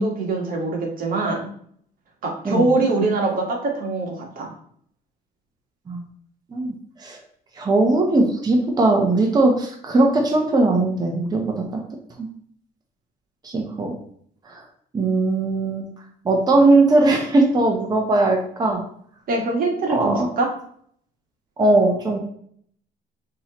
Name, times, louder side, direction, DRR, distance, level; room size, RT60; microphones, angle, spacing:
voice 1, 0.0-1.5 2.2-4.5 19.3-20.5, right 2 dB, 55° right, 0 dB, 1.4 m, -23 dB
voice 2, 7.6-11.8 12.2-12.3 13.4-13.9 14.5-14.6 14.9-15.9 16.2-18.8 19.9-20.3 21.6-22.2, right 2 dB, 25° right, 1 dB, 0.8 m, -19 dB
6.1 x 2.9 x 2.9 m, 0.63 s
cardioid pair, 110°, 17 cm